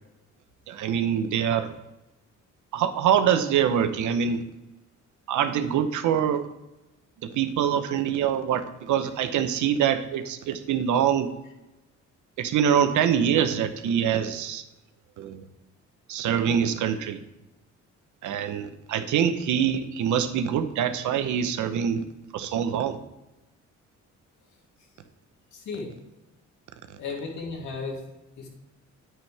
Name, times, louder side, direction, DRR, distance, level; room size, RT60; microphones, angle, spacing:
voice 1, 0.7-1.7 2.7-4.4 5.3-6.5 7.2-11.3 12.4-14.6 15.2-15.4 16.1-17.2 18.2-22.1 22.3-23.0, right 8 dB, 80° right, 10 dB, 0.9 m, -24 dB
voice 2, 25.5-25.9 27.0-28.0 28.4-28.6, left 4 dB, 75° left, -1 dB, 2.9 m, -34 dB
9.2 x 9.2 x 3.4 m, 0.97 s
cardioid pair, 90°, 30 cm